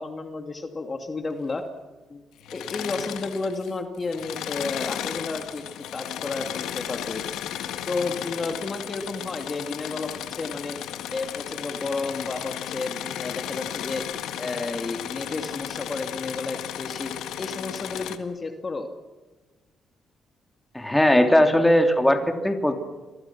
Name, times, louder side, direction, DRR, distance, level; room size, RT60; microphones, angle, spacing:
voice 1, 0.0-1.6 2.1-2.2 2.5-5.6 5.9-7.2 7.9-10.8 11.1-14.0 14.4-17.1 17.4-18.9, left 3 dB, 30° left, 5 dB, 2.5 m, -32 dB
Engine / Mechanisms, 2.4-3.7 4.0-18.2, left 11 dB, 85° left, 1.8 m, -34 dB
voice 2, 20.7-22.7, left 1 dB, 10° left, 5 dB, 3.0 m, -19 dB
29.5 x 23.5 x 6.1 m, 1.3 s
cardioid pair, 90°, 0 cm